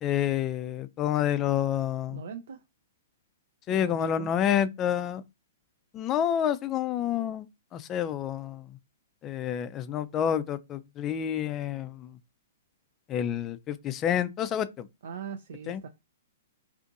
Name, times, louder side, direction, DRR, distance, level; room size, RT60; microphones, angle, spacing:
voice 1, 0.0-2.2 3.7-5.2 5.9-8.8 9.2-12.2 13.1-14.9 15.7-15.8, left 10 dB, 25° left, 0.3 m, -29 dB
voice 2, 2.1-2.6 3.7-4.3 15.0-15.9, right 6 dB, 70° right, 0.3 m, -40 dB
2.5 x 2.4 x 2.6 m
hypercardioid pair, 130°, 0 cm